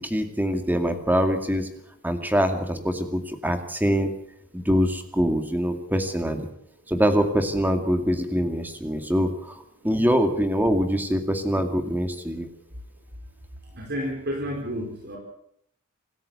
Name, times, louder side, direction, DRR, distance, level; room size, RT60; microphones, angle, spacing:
voice 1, 0.0-1.7 2.0-4.1 4.5-6.5 6.9-9.5 9.8-12.5, equal, 10° right, 7 dB, 2.2 m, -24 dB
voice 2, 13.8-15.2, equal, 45° right, 0 dB, 4.3 m, -30 dB
26.0 x 13.5 x 8.3 m, 0.70 s
head